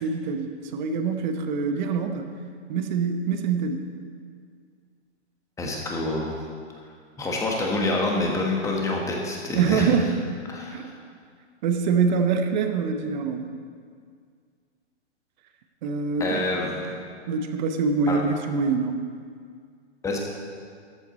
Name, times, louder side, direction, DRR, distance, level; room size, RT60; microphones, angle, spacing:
voice 1, 0.0-2.3 2.7-3.8 9.5-10.2 10.7-10.9 11.6-13.5 15.8-16.4 17.3-19.0, right 5 dB, 40° right, 6 dB, 1.0 m, -25 dB
voice 2, 5.6-6.4 7.2-9.9 10.5-10.8 16.2-16.8 18.1-18.2 20.0-20.2, left 2 dB, 10° left, -1 dB, 1.3 m, -27 dB
13.5 x 8.1 x 4.2 m, 2.1 s
hypercardioid pair, 140°, 36 cm